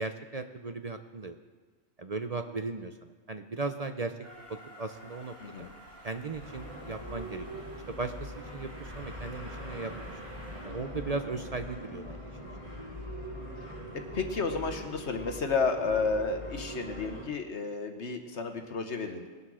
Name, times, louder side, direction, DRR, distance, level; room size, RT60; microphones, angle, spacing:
voice 1, 0.0-1.4 2.0-4.1 4.5-5.3 6.0-9.9 10.6-12.2, right 3 dB, 40° right, 7 dB, 0.6 m, -37 dB
Train, 4.2-10.7, equal, 80° right, 4.5 m, -51 dB
sound 1, 6.4-17.3, equal, 25° right, 3.1 m, -42 dB
voice 2, 14.1-19.3, left 4 dB, 60° left, 6 dB, 1.3 m, -31 dB
20.5 x 8.0 x 6.2 m, 1.4 s
omnidirectional pair, 1.4 m